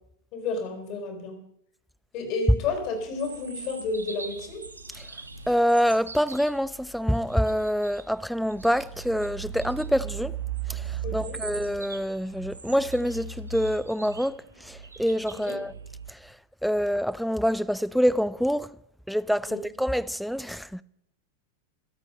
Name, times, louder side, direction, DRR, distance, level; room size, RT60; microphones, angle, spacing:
voice 1, 0.3-1.4 2.1-4.6 11.0-11.4 15.3-15.6 19.5-19.6, left 3 dB, 40° left, 4.4 m, -31 dB
sound 1, 2.6-8.1 8.4-16.1, right 7 dB, 80° right, 1.0 m, -39 dB
voice 2, 5.5-10.4 10.7-15.7 16.1-16.4 16.6-18.7 19.1-20.8, equal, ahead, 0.5 m, -26 dB
24.0 x 8.2 x 5.4 m
figure-of-eight pair, 90°, 0 cm